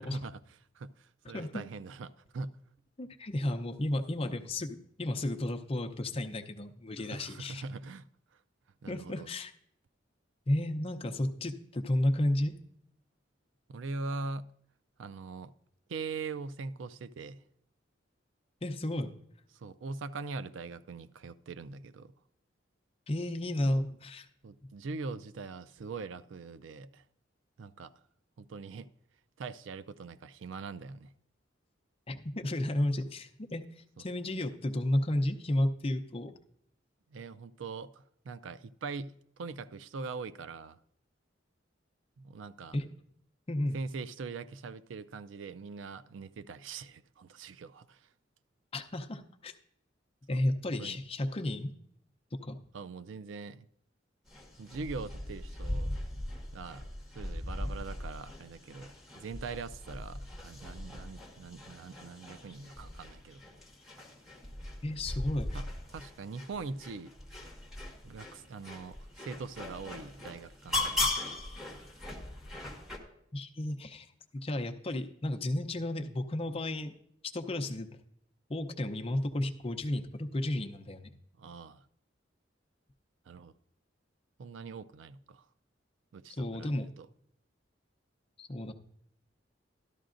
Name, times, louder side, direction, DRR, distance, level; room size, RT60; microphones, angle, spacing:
voice 1, 0.0-2.6 7.1-8.1 8.8-9.3 13.7-14.5 15.0-15.5 15.9-17.4 19.5-22.1 24.4-27.0 27.6-27.9 28.4-28.9 29.4-31.1 37.1-40.8 42.2-42.8 43.7-48.1 50.3-50.4 50.8-51.0 52.7-53.7 54.6-55.9 56.5-56.9 57.1-63.4 63.9-64.0 65.5-67.1 68.0-70.8 81.4-81.8 83.3-83.5 84.4-85.5 86.1-87.1, right 4 dB, 85° right, 0.4 m, -42 dB
voice 2, 1.3-1.6 3.0-7.6 8.9-9.5 10.5-12.5 18.6-19.1 23.1-24.3 32.1-36.4 42.7-42.9 43.5-43.8 48.7-49.5 50.3-51.7 52.4-52.6 64.8-65.6 73.3-74.1 74.3-76.9 77.3-77.9 78.5-81.1 86.3-86.9 88.4-88.7, left 1 dB, 30° left, 0.6 m, -32 dB
sound 1, 54.3-73.0, left 2 dB, ahead, 1.4 m, -39 dB
13.0 x 12.5 x 2.5 m
head